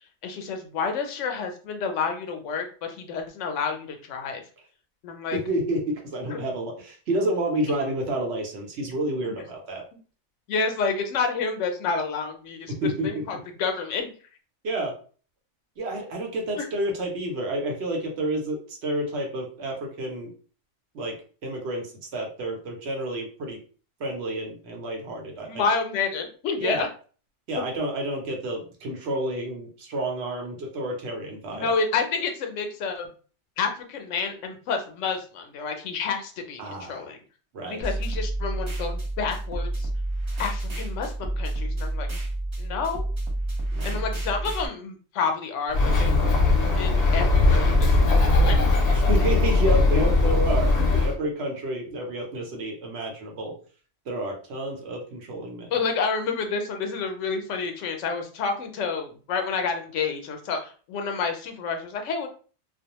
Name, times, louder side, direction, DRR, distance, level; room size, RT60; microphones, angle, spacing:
voice 1, 0.2-4.4 5.0-5.4 6.3-6.4 9.2-9.3 10.5-14.1 16.6-16.7 25.4-26.9 31.5-33.1 33.6-37.2 37.6-39.9 40.4-42.1 42.6-43.1 43.8-46.2 46.6-48.9 50.8-50.9 55.7-62.3, left 5 dB, 80° left, 5 dB, 0.9 m, -29 dB
voice 2, 5.3-9.8 12.7-13.4 14.6-14.9 15.8-20.3 20.9-21.1 21.4-23.6 24.0-25.6 26.6-26.8 27.5-31.7 36.6-37.1 37.5-37.9 43.7-44.0 48.9-53.5 54.1-55.7, right 1 dB, 65° right, 1 dB, 0.9 m, -30 dB
sound 1, 37.8-44.7, right 1 dB, 35° right, 0.5 m, -29 dB
Bird, 45.7-51.1, left 2 dB, 60° left, 0.8 m, -20 dB
2.4 x 2.0 x 2.9 m, 0.40 s
omnidirectional pair, 1.2 m